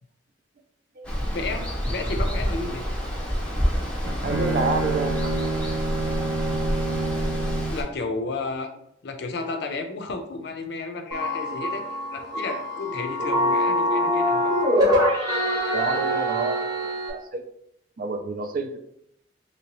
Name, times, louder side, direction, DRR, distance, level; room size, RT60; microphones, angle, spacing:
Water, 1.0-7.8, equal, 5° left, 0.5 m, -28 dB
voice 1, 1.3-2.9 7.7-8.7 9.0-11.8 12.1-14.5, left 3 dB, 60° left, 6 dB, 0.4 m, -32 dB
Bowed string instrument, 3.7-7.9, right 2 dB, 90° right, 0.7 m, -28 dB
voice 2, 4.2-5.3 15.7-16.7 17.1-17.4 18.0-18.8, right 3 dB, 50° right, 6 dB, 0.4 m, -28 dB
sound 1, 11.1-17.1, equal, 20° right, 0.8 m, -24 dB
3.0 x 2.8 x 2.9 m, 0.75 s
head